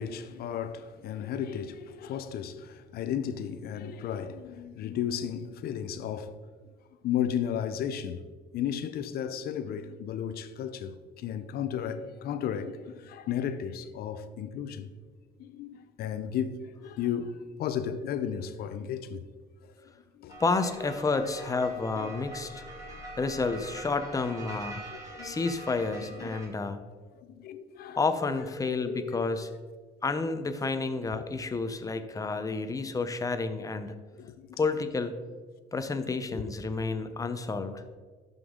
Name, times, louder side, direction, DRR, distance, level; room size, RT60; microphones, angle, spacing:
voice 1, 0.0-6.4 7.0-8.2 8.5-14.9 15.4-19.2 19.8-20.4 22.0-22.2 24.9-25.5 26.2-26.7 27.2-28.0 28.6-29.3 31.6-31.7 34.2-34.5 36.3-36.5, left 8 dB, 65° left, 0.6 m, -34 dB
sound 1, 20.3-26.5, right 1 dB, 20° right, 2.6 m, -44 dB
voice 2, 20.4-22.6 23.2-24.8 25.2-26.8 28.0-29.5 30.0-34.0 34.6-35.1 35.7-37.8, left 3 dB, 20° left, 0.7 m, -30 dB
12.0 x 5.3 x 3.8 m
cardioid pair, 110°, 17 cm